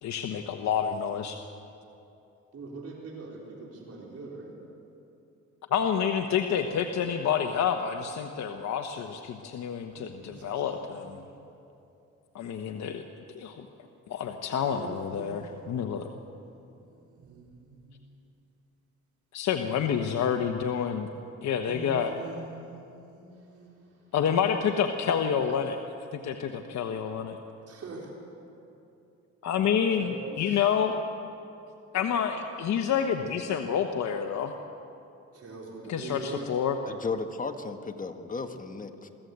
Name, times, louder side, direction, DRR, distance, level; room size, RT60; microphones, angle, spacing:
voice 1, 0.0-1.4 5.7-11.2 12.3-13.0 13.3-13.7 14.1-16.1 19.3-21.1 21.4-22.1 24.1-25.7 26.1-27.4 29.4-31.0 31.9-34.5 35.9-36.8, left 8 dB, 65° left, 3 dB, 1.2 m, -28 dB
voice 2, 2.5-4.5 23.3-24.1 27.7-28.1 29.9-30.7 35.3-36.5, right 3 dB, 55° right, -2 dB, 4.6 m, -42 dB
sound 1, 9.9-11.4 14.5-15.7 16.7-18.3 21.6-23.7, right 3 dB, 75° right, 3.7 m, -47 dB
voice 3, 36.8-39.1, left 4 dB, 25° left, 6 dB, 1.6 m, -35 dB
23.5 x 14.5 x 8.1 m, 2.8 s
cardioid pair, 90°, 30 cm